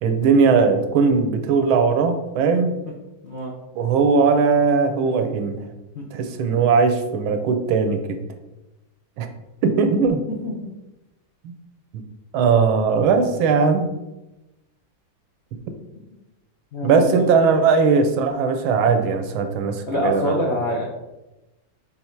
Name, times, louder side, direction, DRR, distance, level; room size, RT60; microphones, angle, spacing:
voice 1, 0.0-2.7 3.7-5.6 6.1-8.2 9.2-9.3 9.6-10.2 11.4-11.5 11.9-12.0 12.3-13.9 16.8-20.4, right 5 dB, 80° right, 7 dB, 1.5 m, -19 dB
voice 2, 3.2-3.5 5.9-6.1 10.4-10.5 16.0-16.1 16.7-17.2 19.9-20.8, left 1 dB, 55° left, -3 dB, 0.7 m, -25 dB
5.6 x 4.2 x 4.4 m, 1.0 s
omnidirectional pair, 2.2 m